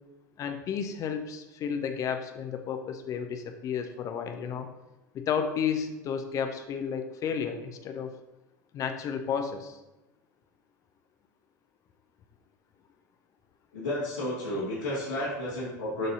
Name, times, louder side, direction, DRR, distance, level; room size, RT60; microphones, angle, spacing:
voice 1, 0.4-4.7 5.1-8.1 8.7-9.8, left 7 dB, 35° left, 7 dB, 0.6 m, -32 dB
voice 2, 13.7-16.1, left 1 dB, 80° left, -10 dB, 1.9 m, -32 dB
11.5 x 4.0 x 2.7 m, 1.0 s
figure-of-eight pair, 80°, 10 cm